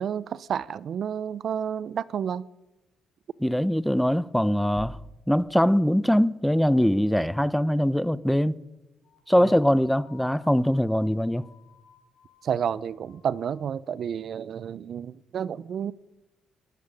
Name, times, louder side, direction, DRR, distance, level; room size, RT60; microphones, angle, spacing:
voice 1, 0.0-2.5 9.4-9.6 12.4-15.9, right 8 dB, 60° right, 0.7 m, -30 dB
voice 2, 3.4-5.0 5.3-8.6 9.3-11.5, equal, ahead, 0.8 m, -22 dB
sound 1, 4.8-5.7, left 1 dB, 30° left, 2.2 m, -43 dB
sound 2, 9.0-13.7, left 6 dB, 65° left, 4.2 m, -56 dB
19.0 x 19.0 x 9.9 m
cardioid pair, 90°, 0 cm